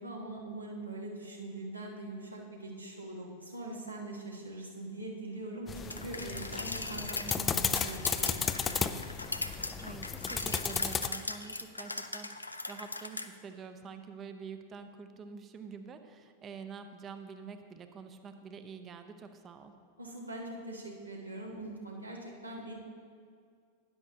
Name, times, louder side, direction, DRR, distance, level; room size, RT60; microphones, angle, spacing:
voice 1, 0.0-9.0 20.0-22.7, right 2 dB, 85° right, -1 dB, 1.6 m, -42 dB
sound 1, 5.7-11.1, left 7 dB, 20° left, 0.4 m, -34 dB
sound 2, 5.9-13.3, left 2 dB, 85° left, 0.4 m, -39 dB
voice 2, 9.8-19.7, right 6 dB, 25° right, 8 dB, 0.7 m, -47 dB
12.5 x 10.5 x 2.8 m, 2.2 s
figure-of-eight pair, 90°, 0 cm